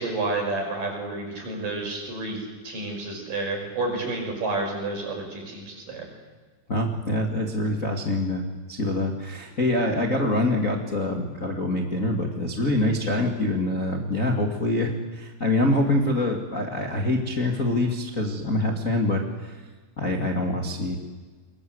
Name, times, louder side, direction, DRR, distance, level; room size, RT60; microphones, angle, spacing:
voice 1, 0.0-6.1, right 2 dB, 40° right, 1 dB, 7.2 m, -30 dB
voice 2, 6.7-8.4 8.7-19.5 20.0-20.9, left 1 dB, 70° left, 1 dB, 0.7 m, -25 dB
28.5 x 22.5 x 8.1 m, 1.4 s
omnidirectional pair, 6.0 m